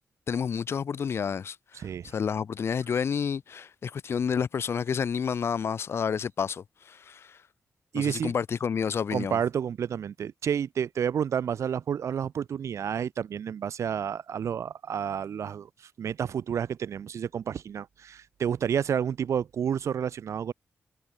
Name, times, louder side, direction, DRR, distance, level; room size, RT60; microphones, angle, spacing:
voice 1, 0.3-1.6 2.0-7.4 7.9-9.4, left 7 dB, 55° left, 1.6 m, -30 dB
voice 2, 1.7-2.1 7.9-8.3 9.1-15.7 16.0-20.5, right 8 dB, 70° right, 1.2 m, -30 dB
wide cardioid pair, 180°, 5 cm